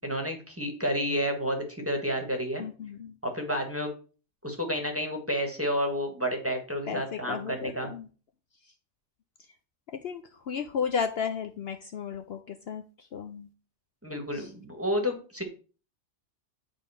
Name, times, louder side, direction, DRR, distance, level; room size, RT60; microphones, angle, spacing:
voice 1, 0.0-2.6 3.2-3.9 4.4-7.9 14.0-15.4, equal, 10° right, 3 dB, 1.4 m, -30 dB
voice 2, 2.6-3.2 6.9-8.1 8.6-8.7 10.0-13.5 14.3-14.5, left 7 dB, 60° left, 7 dB, 0.8 m, -34 dB
8.9 x 3.7 x 5.5 m, 0.38 s
omnidirectional pair, 1.3 m